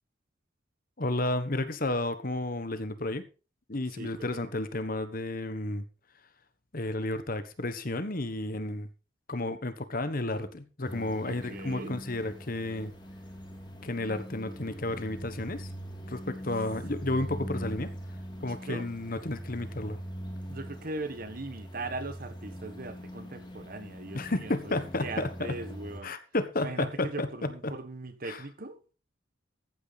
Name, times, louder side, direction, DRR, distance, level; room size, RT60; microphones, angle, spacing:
voice 1, 1.0-3.2 3.7-5.8 6.7-8.9 9.3-12.9 13.8-15.7 16.1-17.9 18.4-20.0 24.1-25.6 26.0-27.8 28.2-28.4, left 2 dB, 45° left, 1.3 m, -32 dB
voice 2, 4.0-4.5 11.2-12.0 18.4-18.9 20.5-26.1 26.6-28.9, right 2 dB, 45° right, 1.4 m, -40 dB
sound 1, 10.8-26.0, equal, 20° left, 3.2 m, -42 dB
14.5 x 9.3 x 4.1 m
head